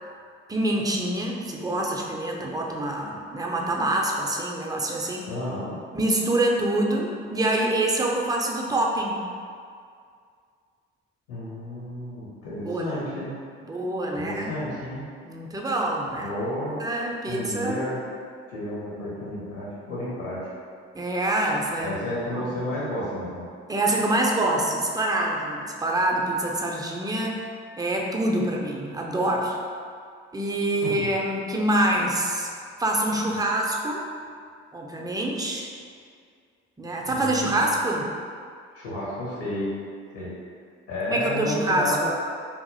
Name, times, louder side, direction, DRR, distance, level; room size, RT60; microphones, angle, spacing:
voice 1, 0.5-5.3 5.9-9.2 12.7-13.0 13.7-14.6 15.3-16.3 16.8-17.9 20.9-22.0 22.3-22.5 23.7-27.4 27.8-29.6 30.3-32.5 32.8-34.1 34.7-35.7 36.8-38.1 41.1-42.0, right 1 dB, 10° right, -1 dB, 0.4 m, -26 dB
voice 2, 5.3-5.8 11.3-13.3 14.1-15.0 16.1-16.8 17.3-18.0 18.5-20.5 21.8-23.5 30.8-30.9 37.0-37.6 38.7-39.7 40.1-40.3 40.9-42.1, left 1 dB, 75° left, -8 dB, 1.2 m, -31 dB
2.7 x 2.6 x 2.6 m, 2.2 s
hypercardioid pair, 50°, 34 cm